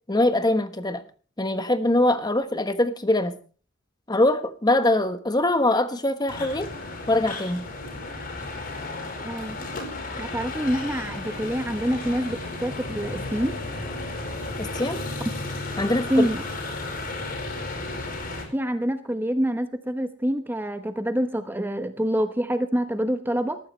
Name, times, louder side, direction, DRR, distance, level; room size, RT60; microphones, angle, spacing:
voice 1, 0.1-1.0 1.4-3.4 4.1-6.7 7.1-7.6 14.6-15.0 15.8-16.3, left 1 dB, 20° left, 10 dB, 1.2 m, -23 dB
sound 1, 6.3-18.4, left 2 dB, 50° left, 4.6 m, -33 dB
voice 2, 9.2-9.6 10.2-13.6 16.1-16.4 18.5-23.6, equal, 10° right, 8 dB, 0.9 m, -26 dB
20.0 x 14.5 x 3.2 m, 0.39 s
head